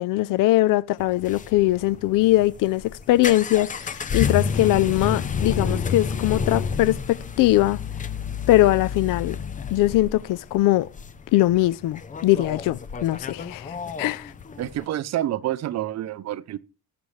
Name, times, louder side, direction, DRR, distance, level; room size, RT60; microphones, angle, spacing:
voice 1, 0.0-7.8 8.5-9.4 9.7-10.9 11.3-14.3, left 16 dB, 80° left, 0.5 m, -21 dB
sound 1, 1.0-14.8, left 6 dB, 25° left, 0.6 m, -30 dB
voice 2, 14.6-16.6, right 13 dB, 55° right, 0.6 m, -28 dB
20.5 x 7.0 x 3.2 m
cardioid pair, 150°, 32 cm